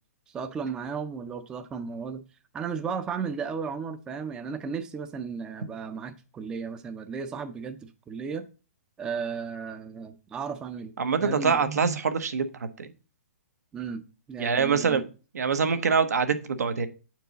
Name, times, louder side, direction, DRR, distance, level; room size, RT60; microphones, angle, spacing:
voice 1, 0.3-2.2 2.5-8.5 9.0-10.9 11.2-12.0 13.7-14.0 14.3-15.0, right 6 dB, 10° right, 0.4 m, -34 dB
voice 2, 11.0-12.5 12.8-12.9 14.4-15.1 15.3-16.9, right 5 dB, 85° right, 1.0 m, -24 dB
7.2 x 4.6 x 3.9 m
hypercardioid pair, 160°, 9 cm